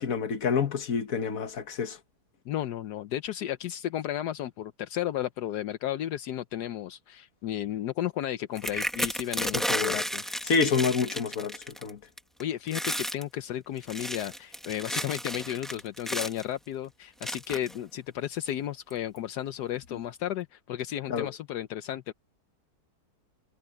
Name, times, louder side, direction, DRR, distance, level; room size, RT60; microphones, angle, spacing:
voice 1, 0.0-2.0 9.7-10.0 10.5-12.0 21.1-21.3, left 5 dB, 55° left, 1.7 m, -28 dB
voice 2, 2.4-10.5 12.4-22.1, left 12 dB, 80° left, 1.3 m, -33 dB
sound 1, 8.6-11.9 12.2-12.4 12.7-13.2 13.8-16.4 17.2-17.8 18.5-18.6 18.9-19.2, equal, ahead, 1.7 m, -33 dB
omnidirectional pair, 1.8 m